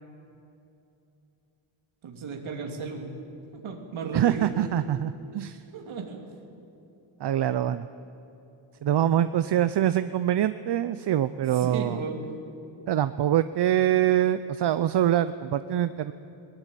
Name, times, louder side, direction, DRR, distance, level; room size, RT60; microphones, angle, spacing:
voice 1, 2.0-3.2 3.5-4.5 5.7-6.2 11.5-12.2, right 5 dB, 80° right, 2 dB, 2.8 m, -34 dB
voice 2, 4.1-5.6 7.2-7.9 8.8-12.0 12.9-16.1, right 11 dB, 60° right, 12 dB, 0.6 m, -24 dB
20.5 x 19.0 x 9.1 m, 2.8 s
wide cardioid pair, 145°, 47 cm